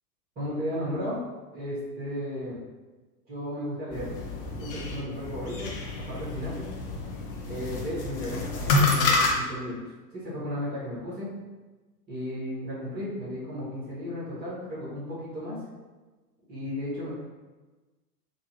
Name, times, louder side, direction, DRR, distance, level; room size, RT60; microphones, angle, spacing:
voice 1, 0.3-1.2 1.5-2.6 3.3-4.1 4.6-5.7 6.1-6.7 7.5-9.8 10.1-11.3 12.1-15.6 16.5-17.1, equal, 20° right, -8 dB, 1.5 m, -34 dB
sound 1, 3.9-9.3, left 3 dB, 35° left, 0.7 m, -28 dB
3.9 x 2.4 x 2.9 m, 1.2 s
figure-of-eight pair, 105°, 50 cm